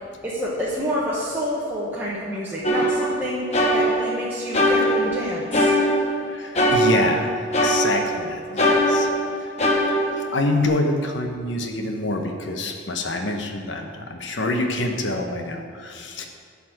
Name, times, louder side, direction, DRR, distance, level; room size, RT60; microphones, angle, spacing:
voice 1, 0.2-5.8, equal, 10° right, -8 dB, 1.1 m, -28 dB
sound 1, 2.6-4.2 4.5-6.2 6.5-8.2 8.6-10.7, equal, 35° left, 1.0 m, -21 dB
voice 2, 6.3-16.2, left 2 dB, 70° left, 3 dB, 1.1 m, -26 dB
11.5 x 4.1 x 7.7 m, 2.1 s
head